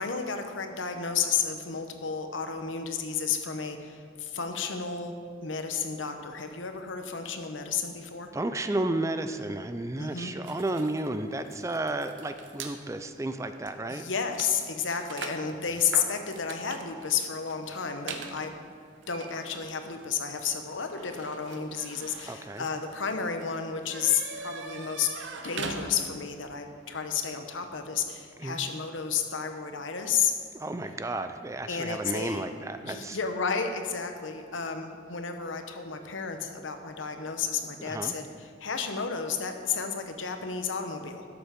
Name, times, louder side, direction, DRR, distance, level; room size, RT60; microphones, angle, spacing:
voice 1, 0.0-5.1 5.4-8.3 10.0-10.3 13.9-18.6 19.1-25.1 25.4-30.3 31.7-32.5 32.8-41.3, left 6 dB, 85° left, 6 dB, 1.0 m, -32 dB
voice 2, 8.3-14.0 22.3-22.7 28.4-28.6 30.5-33.2 37.8-38.1, right 2 dB, 15° right, 9 dB, 0.4 m, -32 dB
sound 1, 10.4-12.8 13.5-13.6 13.9-26.3, right 4 dB, 80° right, 0.9 m, -43 dB
12.0 x 7.0 x 5.2 m, 2.3 s
head